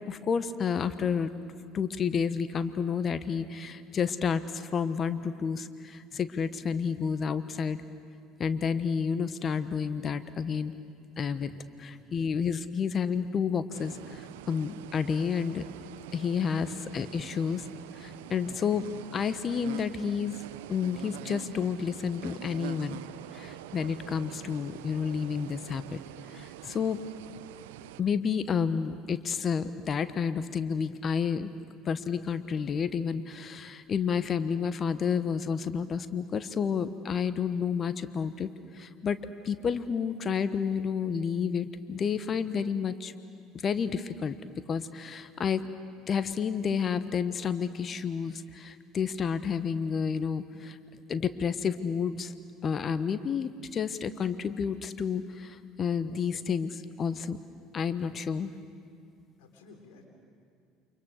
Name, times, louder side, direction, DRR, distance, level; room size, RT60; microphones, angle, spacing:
voice 1, 0.1-1.3 1.7-7.8 8.4-10.7 11.2-15.6 16.1-17.7 17.9-18.9 19.1-20.4 20.7-23.0 23.3-26.0 26.3-27.0 28.0-31.5 31.8-38.5 38.7-39.2 39.4-43.1 43.5-44.3 44.7-45.6 46.1-50.8 51.1-52.3 52.6-57.4 57.7-58.5, left 6 dB, 40° left, 12 dB, 1.1 m, -30 dB
voice 2, 11.5-12.1 16.5-16.9 59.4-60.1, left 4 dB, 75° left, 3 dB, 3.7 m, -55 dB
sound 1, 13.7-28.0, right 15 dB, 75° right, 0.6 m, -45 dB
29.0 x 26.5 x 6.5 m, 2.3 s
hypercardioid pair, 65°, 0 cm